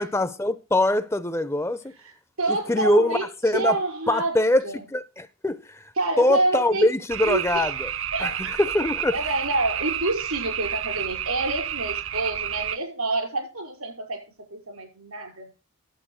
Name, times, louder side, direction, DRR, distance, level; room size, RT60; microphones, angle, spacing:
voice 1, 0.0-1.8 2.5-3.8 4.1-4.6 4.9-5.9 6.2-7.9 8.2-8.3 8.6-9.2, left 1 dB, 10° left, 0.5 m, -23 dB
voice 2, 2.4-3.3 3.5-4.4 4.6-4.8 6.0-6.9 7.2-7.7 8.1-8.6 9.1-14.2 14.5-15.5, right 2 dB, 90° right, 5.4 m, -27 dB
sound 1, 7.1-12.8, right 10 dB, 70° right, 0.7 m, -30 dB
11.0 x 8.4 x 6.3 m
head